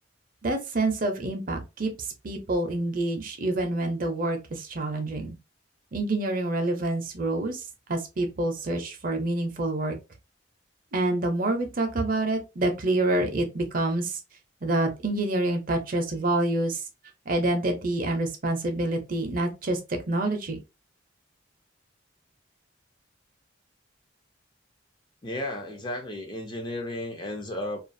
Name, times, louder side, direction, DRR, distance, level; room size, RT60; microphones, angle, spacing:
voice 1, 0.4-5.4 5.9-9.9 10.9-14.2 14.6-16.8 17.3-20.6, right 2 dB, 45° right, 0.6 m, -27 dB
voice 2, 25.2-27.8, left 1 dB, 25° left, 0.5 m, -33 dB
2.4 x 2.4 x 2.5 m
head